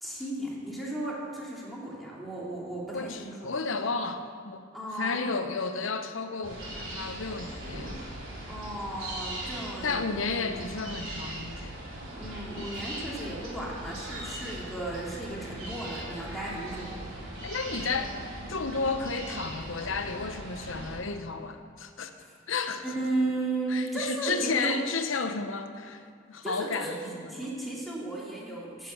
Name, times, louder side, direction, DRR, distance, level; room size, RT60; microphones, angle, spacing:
voice 1, 0.0-3.5 4.7-5.2 8.5-10.6 12.1-17.0 22.2-22.3 22.8-24.7 26.4-27.0 27.3-28.9, right 2 dB, ahead, -5 dB, 2.6 m, -35 dB
voice 2, 2.9-4.7 5.0-8.0 9.8-11.7 12.6-12.7 17.4-18.1 18.5-22.1 22.5-22.8 23.7-27.5, left 4 dB, 80° left, 8 dB, 0.9 m, -32 dB
sound 1, 6.4-21.0, right 1 dB, 85° right, 3.7 m, -39 dB
10.5 x 7.6 x 8.5 m, 2.1 s
head